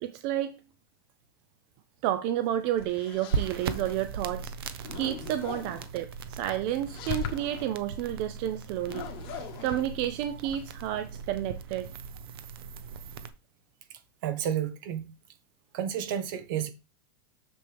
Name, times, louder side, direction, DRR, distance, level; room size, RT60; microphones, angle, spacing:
voice 1, 0.0-0.6 2.0-11.9, right 12 dB, 45° right, 0.5 m, -31 dB
sound 1, 2.5-4.1 4.4-5.9 6.7-7.7 8.8-10.9, left 8 dB, 40° left, 1.6 m, -40 dB
sound 2, 3.3-13.3, right 6 dB, 85° right, 0.9 m, -38 dB
voice 2, 14.2-15.0 15.7-16.7, right 9 dB, 60° right, 1.3 m, -31 dB
7.0 x 6.7 x 3.4 m
supercardioid pair, 150°, 12 cm